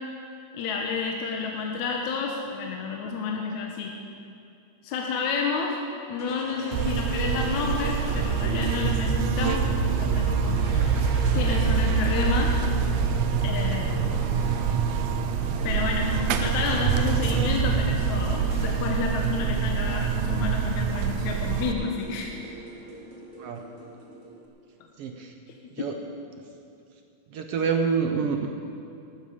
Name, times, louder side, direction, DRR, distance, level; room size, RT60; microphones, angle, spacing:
voice 1, 0.5-3.9 4.8-5.8 6.1-10.7 11.3-12.5 13.4-14.1 15.6-22.3, left 5 dB, 75° left, 0 dB, 2.3 m, -30 dB
sound 1, 6.2-8.8 9.8-13.1 14.3-15.1 16.3-17.8 18.5-18.6, left 1 dB, 45° left, 4.2 m, -43 dB
Buzz, 6.7-21.7, right 7 dB, 85° right, 2.1 m, -25 dB
sound 2, 7.1-24.5, right 1 dB, 20° right, 1.4 m, -39 dB
voice 2, 25.0-25.3 25.8-25.9 27.3-28.5, right 6 dB, 70° right, 4 dB, 1.5 m, -26 dB
14.5 x 12.5 x 5.1 m, 2.5 s
omnidirectional pair, 3.5 m